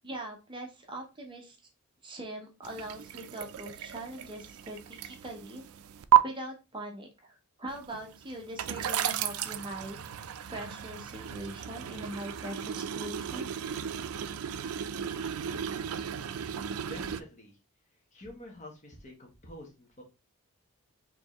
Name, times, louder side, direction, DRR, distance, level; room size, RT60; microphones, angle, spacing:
voice 1, 0.0-1.6 2.0-5.6 6.2-10.0 10.5-13.5, right 1 dB, 25° right, 2 dB, 0.8 m, -42 dB
sound 1, 2.6-6.2 7.7-17.2, right 10 dB, 75° right, 0.4 m, -33 dB
voice 2, 16.8-17.6 18.1-20.0, left 1 dB, 35° left, 1 dB, 1.0 m, -47 dB
4.5 x 2.9 x 3.0 m, 0.28 s
head